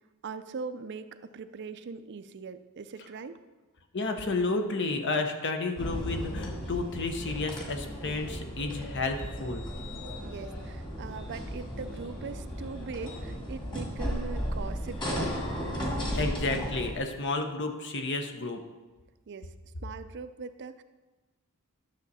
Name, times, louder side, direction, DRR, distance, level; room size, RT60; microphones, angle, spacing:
voice 1, 0.2-3.4 10.2-15.3 19.3-19.5 19.8-20.8, right 5 dB, 55° right, 11 dB, 0.4 m, -41 dB
voice 2, 3.9-9.6 16.1-18.6, left 3 dB, 55° left, 5 dB, 0.9 m, -31 dB
sound 1, 5.8-17.0, equal, 20° left, 1.9 m, -35 dB
11.5 x 6.6 x 4.1 m, 1.2 s
head